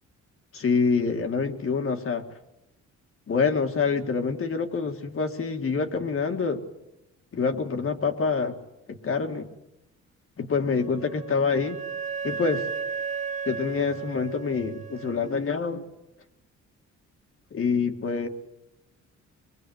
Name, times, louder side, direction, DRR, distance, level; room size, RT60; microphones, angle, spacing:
voice 1, 0.5-2.2 3.3-6.6 7.3-8.5 8.9-9.5 10.4-11.8 12.2-12.7 13.5-15.8 17.5-18.3, left 5 dB, 45° left, 6 dB, 2.1 m, -26 dB
Wind instrument woodwind instrument, 10.7-15.4, right 6 dB, 25° right, 1.0 m, -34 dB
23.0 x 21.5 x 8.0 m, 0.92 s
cardioid pair, 90°, 30 cm